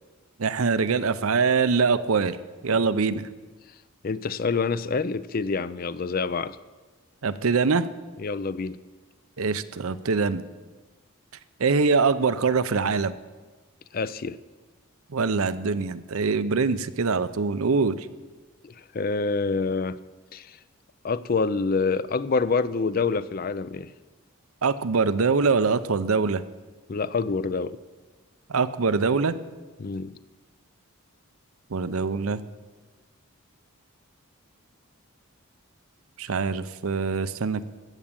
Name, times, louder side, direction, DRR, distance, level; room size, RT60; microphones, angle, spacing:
voice 1, 0.4-2.4 2.6-3.2 7.2-7.9 9.4-10.4 11.6-13.1 15.1-18.1 24.6-26.4 28.5-29.4 31.7-32.4 36.2-37.6, right 4 dB, 75° right, 13 dB, 0.6 m, -23 dB
voice 2, 4.0-6.6 8.2-8.8 13.9-14.4 18.6-20.0 20.3-20.6 21.0-23.9 26.9-27.8 29.8-30.2, left 4 dB, 40° left, 16 dB, 0.4 m, -27 dB
15.5 x 7.3 x 8.9 m, 1.3 s
head